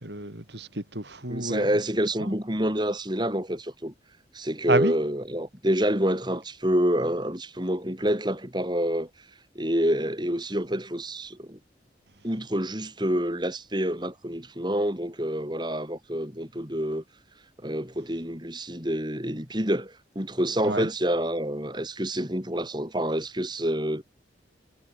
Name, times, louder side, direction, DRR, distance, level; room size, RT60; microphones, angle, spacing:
voice 1, 0.0-1.7 2.2-2.3 4.7-4.9 20.6-20.9, right 2 dB, 70° right, 4.9 m, -29 dB
voice 2, 1.3-3.9 4.3-9.1 9.5-11.6 12.2-17.0 17.6-24.0, equal, 25° right, 5.9 m, -27 dB
head